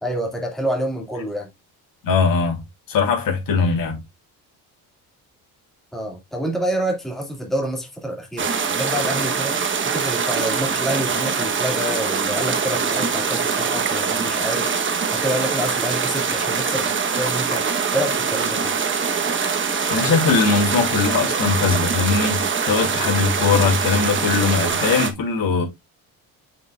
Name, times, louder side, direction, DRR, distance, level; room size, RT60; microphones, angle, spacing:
voice 1, 0.0-1.5 5.9-9.6 9.8-14.7 15.1-17.6 17.9-18.8, equal, ahead, 2.2 m, -27 dB
voice 2, 2.0-2.6 2.9-4.0 19.9-25.6, left 5 dB, 55° left, 3.6 m, -20 dB
sound 1, 8.4-25.1, right 6 dB, 30° right, 1.1 m, -23 dB
7.6 x 6.5 x 2.4 m
cardioid pair, 140°, 40 cm